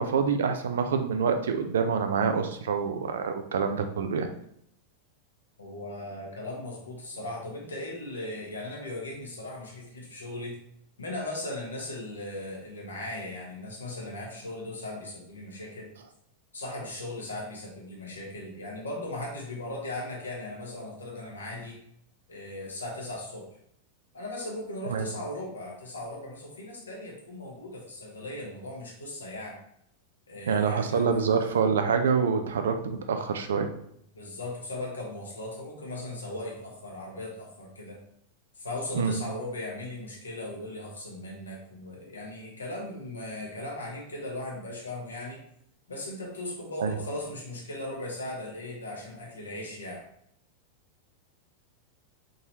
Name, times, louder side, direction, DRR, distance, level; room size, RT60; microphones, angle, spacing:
voice 1, 0.0-4.3 24.9-25.1 30.5-33.7 39.0-39.2 46.8-46.9, right 6 dB, 65° right, 7 dB, 0.5 m, -26 dB
voice 2, 5.6-10.6 11.0-15.9 16.5-21.8 22.3-23.4 24.1-29.6 30.3-31.2 34.1-38.0 38.5-45.4 45.9-50.0, left 1 dB, 70° left, -2 dB, 1.2 m, -38 dB
4.0 x 3.7 x 3.0 m, 0.71 s
figure-of-eight pair, 90°, 0 cm